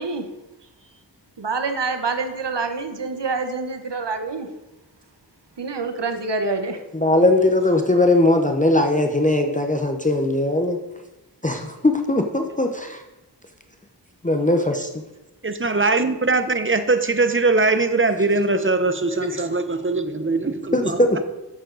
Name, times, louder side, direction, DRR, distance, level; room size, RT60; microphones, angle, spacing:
voice 1, 1.4-4.5 5.6-6.8, right 4 dB, 90° right, 6 dB, 1.1 m, -26 dB
voice 2, 6.9-10.8 11.4-13.0 14.2-14.9 19.1-19.3 20.7-21.2, left 2 dB, 20° left, 4 dB, 0.8 m, -19 dB
voice 3, 15.4-21.0, right 3 dB, 30° right, 10 dB, 0.8 m, -21 dB
11.0 x 7.3 x 4.0 m, 1.0 s
wide cardioid pair, 60°, 41 cm